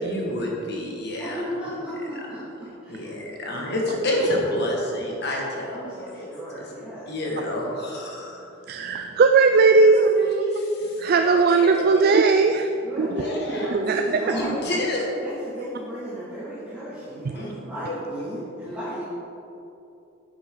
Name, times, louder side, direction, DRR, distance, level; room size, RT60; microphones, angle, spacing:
voice 1, 0.0-1.4 2.9-6.3 7.1-8.5 9.8-12.0 13.1-13.7 14.3-15.1 17.3-17.6 17.8-17.9, left 1 dB, 50° left, -2 dB, 1.8 m, -29 dB
voice 2, 1.2-4.3 5.7-7.1 12.8-14.6 15.2-19.0, right 1 dB, 5° right, -13 dB, 2.2 m, -35 dB
voice 3, 8.7-10.1 11.0-12.6 13.0-13.2 13.7-14.0, right 4 dB, 45° right, 6 dB, 0.3 m, -18 dB
9.5 x 8.8 x 3.9 m, 2.8 s
head